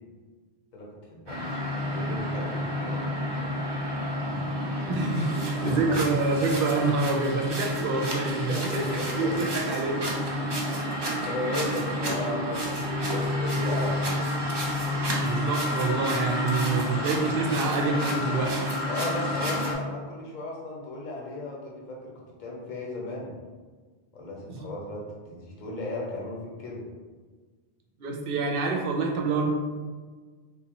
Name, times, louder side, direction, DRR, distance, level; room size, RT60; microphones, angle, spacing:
voice 1, 0.7-1.4 1.7-3.5 5.5-6.0 8.3-9.4 10.7-12.6 13.1-14.0 18.9-23.3 24.1-26.8, left 2 dB, 50° left, -3 dB, 0.9 m, -36 dB
sound 1, 1.3-19.7, equal, 30° right, 0.5 m, -29 dB
voice 2, 4.9-8.6 9.2-10.0 10.5-10.6 15.2-18.6 24.5-24.7 28.0-29.5, right 4 dB, 65° right, 1 dB, 0.7 m, -27 dB
3.8 x 2.7 x 2.9 m, 1.4 s
omnidirectional pair, 1.1 m